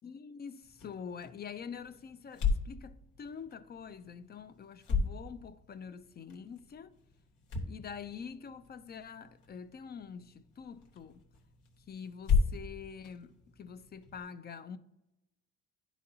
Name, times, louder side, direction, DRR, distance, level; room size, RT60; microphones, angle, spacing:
voice 1, 0.0-6.9 7.7-11.2 11.9-14.8, left 6 dB, 35° left, 0.4 m, -46 dB
sound 1, 0.6-14.2, left 5 dB, 80° left, 1.1 m, -37 dB
10.0 x 4.0 x 2.7 m
cardioid pair, 90°, 30 cm